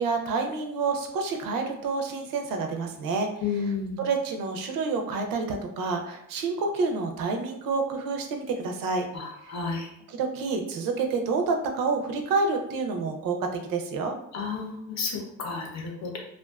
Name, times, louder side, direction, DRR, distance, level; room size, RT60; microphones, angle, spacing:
voice 1, 0.0-3.3 4.0-9.1 10.1-14.1, right 4 dB, 80° right, 4 dB, 0.5 m, -28 dB
voice 2, 3.4-4.0 9.1-9.9 14.3-16.2, left 5 dB, 55° left, 0 dB, 0.7 m, -32 dB
2.5 x 2.2 x 2.3 m, 0.76 s
cardioid pair, 125°, 33 cm